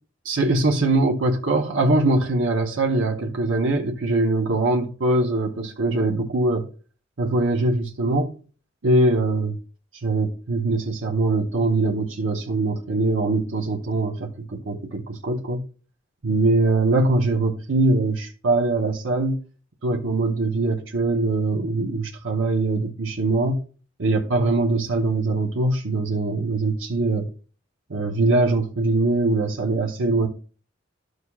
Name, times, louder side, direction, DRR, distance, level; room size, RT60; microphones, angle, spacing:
voice 1, 0.2-6.7 7.2-8.3 8.8-9.5 10.0-15.6 16.2-19.4 19.8-23.6 24.0-27.3 27.9-30.3, right 2 dB, 85° right, 0.9 m, -22 dB
12.5 x 6.4 x 2.4 m
head